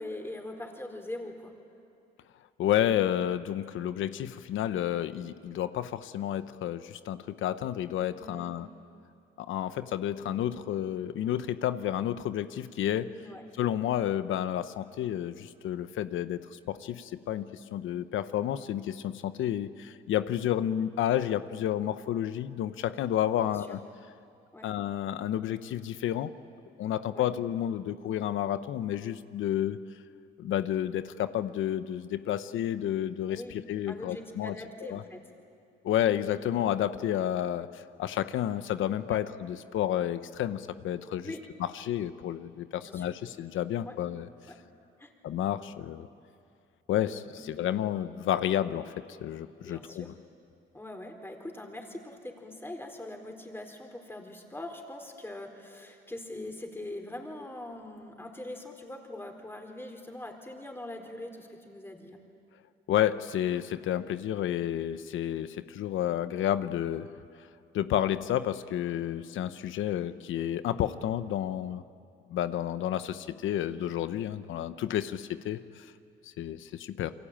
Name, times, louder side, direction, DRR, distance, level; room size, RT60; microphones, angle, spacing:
voice 1, 0.0-1.5 8.2-8.5 13.2-13.4 23.4-23.7 24.5-24.7 27.1-27.2 33.3-33.5 33.9-35.2 39.1-39.2 41.2-41.4 42.8-43.0 43.9-44.0 44.5-44.6 45.0-45.1 47.3-47.4 49.6-50.1 50.7-62.2, left 1 dB, 10° left, 4 dB, 4.3 m, -42 dB
voice 2, 2.6-8.7 9.4-13.1 13.6-23.8 24.6-26.3 26.8-29.8 30.4-34.5 34.8-35.0 35.8-41.3 41.6-44.3 45.2-46.1 46.9-48.9 49.2-50.1 62.9-67.1 67.7-71.8 72.3-75.9 76.2-77.1, left 11 dB, 80° left, 12 dB, 1.0 m, -30 dB
28.5 x 23.5 x 8.9 m, 2.5 s
cardioid pair, 90°, 20 cm